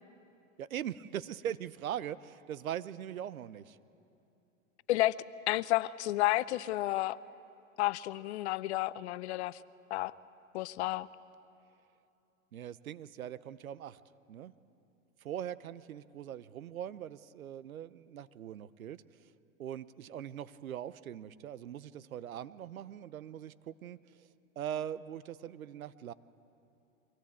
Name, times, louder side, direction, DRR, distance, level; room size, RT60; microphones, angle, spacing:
voice 1, 0.6-3.8 12.5-14.0 14.3-14.5 15.2-19.0 19.6-24.3 24.6-26.1, right 10 dB, 85° right, 17 dB, 0.8 m, -41 dB
voice 2, 5.5-7.2 7.8-9.6 9.9-10.2 10.5-11.1, left 16 dB, 55° left, 18 dB, 0.6 m, -31 dB
24.5 x 17.5 x 8.7 m, 2.7 s
hypercardioid pair, 125°, 41 cm